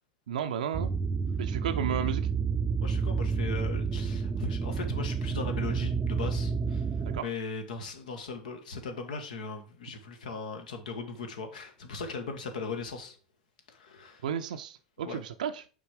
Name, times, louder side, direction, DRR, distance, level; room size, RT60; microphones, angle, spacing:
voice 1, 0.3-0.9 1.4-2.3 7.1-7.3 14.2-15.6, right 8 dB, 75° right, 0.5 m, -33 dB
sound 1, 0.7-7.2, right 5 dB, 20° right, 0.5 m, -30 dB
voice 2, 2.8-6.8 7.2-13.2 13.7-14.2 15.0-15.2, left 4 dB, 75° left, 1.3 m, -38 dB
5.9 x 3.9 x 4.7 m
hypercardioid pair, 90°, 4 cm